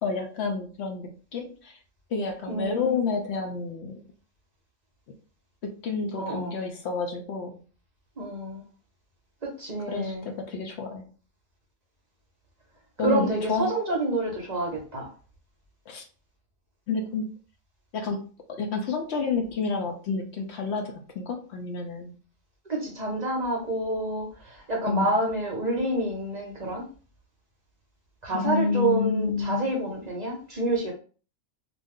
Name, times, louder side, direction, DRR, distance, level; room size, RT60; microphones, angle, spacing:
voice 1, 0.0-1.8 2.1-4.0 5.6-7.6 9.9-11.1 13.0-13.8 15.9-16.0 16.9-17.3 17.9-18.2 18.6-22.1 24.9-25.1 28.3-29.7, left 4 dB, 65° left, 3 dB, 0.7 m, -29 dB
voice 2, 2.5-3.0 6.1-6.5 8.2-8.6 9.6-10.3 13.0-15.1 22.7-24.3 24.7-26.8 28.2-30.9, right 2 dB, 40° right, -1 dB, 0.7 m, -28 dB
2.5 x 2.3 x 3.5 m, 0.38 s
omnidirectional pair, 1.4 m